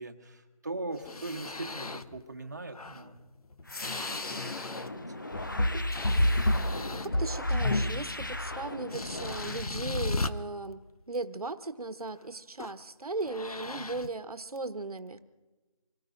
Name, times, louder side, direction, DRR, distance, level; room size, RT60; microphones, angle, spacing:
voice 1, 0.0-3.2 3.6-4.9, right 2 dB, 30° right, 4 dB, 1.1 m, -41 dB
sound 1, 0.9-2.2 2.7-5.1 5.4-7.4 8.5-8.6 8.9-10.3 12.6-12.8 13.2-14.1, left 3 dB, 80° left, 0.9 m, -37 dB
sound 2, 3.6-9.7, left 1 dB, 35° left, 0.6 m, -40 dB
sound 3, 5.3-8.7, left 1 dB, 55° left, 1.0 m, -28 dB
voice 2, 6.9-10.8 11.1-15.2, right 3 dB, 80° right, 11 dB, 1.2 m, -37 dB
27.0 x 18.5 x 2.6 m, 1.2 s
figure-of-eight pair, 175°, 19 cm